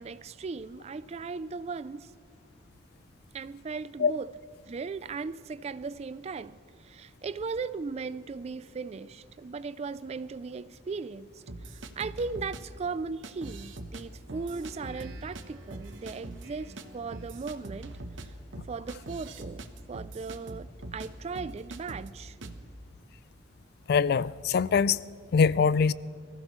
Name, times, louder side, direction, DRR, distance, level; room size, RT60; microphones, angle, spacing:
voice 1, 0.0-2.1 3.3-4.3 4.7-18.3 18.7-22.4, right 4 dB, 35° right, 0.3 m, -37 dB
sound 1, 11.5-12.6 13.2-14.0 14.3-15.4 15.7-16.5 16.8-16.9 17.1-21.1 21.4-22.1 22.4-22.6, right 2 dB, 85° right, 1.0 m, -42 dB
Speech synthesizer, 14.3-17.6, right 1 dB, 70° right, 2.5 m, -51 dB
voice 2, 23.9-25.1 25.3-25.9, left 6 dB, 55° left, 0.3 m, -23 dB
23.5 x 15.0 x 3.1 m
head